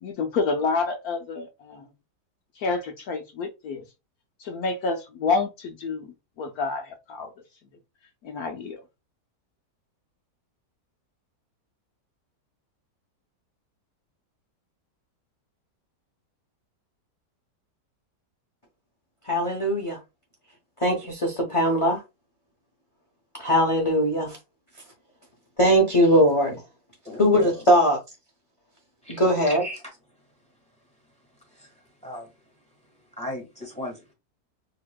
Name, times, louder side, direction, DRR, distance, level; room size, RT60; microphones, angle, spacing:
voice 1, 0.0-1.8 2.6-3.8 4.4-6.1 6.4-7.3 8.2-8.8, left 4 dB, 70° left, 1.0 m, -28 dB
voice 2, 19.3-20.0 20.8-22.0 23.4-24.4 25.6-26.6 27.2-28.0 29.2-29.6, equal, 30° left, 0.6 m, -20 dB
voice 3, 27.0-27.5 29.0-29.2 29.6-29.8 31.6-31.7 32.0-32.3 33.2-34.1, left 1 dB, 5° left, 1.3 m, -36 dB
6.8 x 2.8 x 2.2 m
omnidirectional pair, 1.8 m